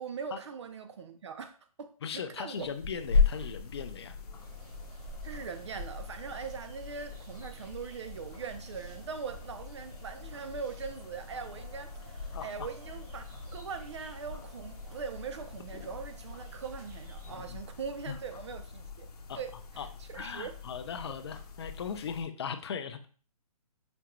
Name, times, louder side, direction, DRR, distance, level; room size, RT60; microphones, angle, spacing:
voice 1, 0.0-2.7 5.2-13.3 13.5-19.1 19.4-20.5, right 6 dB, 50° right, 9 dB, 0.4 m, -41 dB
voice 2, 2.0-4.2 12.3-12.7 17.5-17.6 18.1-18.2 19.3-19.4 19.8-19.9 20.1-23.0, left 7 dB, 45° left, 9 dB, 0.4 m, -38 dB
sound 1, 2.6-22.2, left 5 dB, 80° left, 0.7 m, -38 dB
sound 2, 4.4-17.3, right 1 dB, 30° right, 0.9 m, -50 dB
5.0 x 2.2 x 2.9 m, 0.41 s
hypercardioid pair, 165°, 20 cm